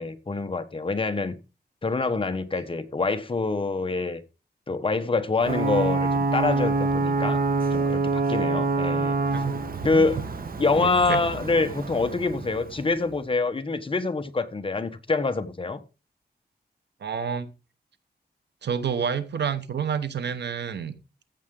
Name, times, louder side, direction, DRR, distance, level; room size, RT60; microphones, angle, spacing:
voice 1, 0.0-1.4 1.8-4.2 4.7-7.4 7.7-9.2 9.8-10.2 10.6-15.8, left 3 dB, 30° left, 1.2 m, -26 dB
Ocean / Boat Water vehicle / Alarm, 5.4-13.0, right 3 dB, 55° right, 1.4 m, -26 dB
voice 2, 10.8-11.2 17.0-17.5 18.6-21.0, right 7 dB, 85° right, 1.2 m, -29 dB
14.5 x 7.3 x 3.8 m
wide cardioid pair, 125°, 17 cm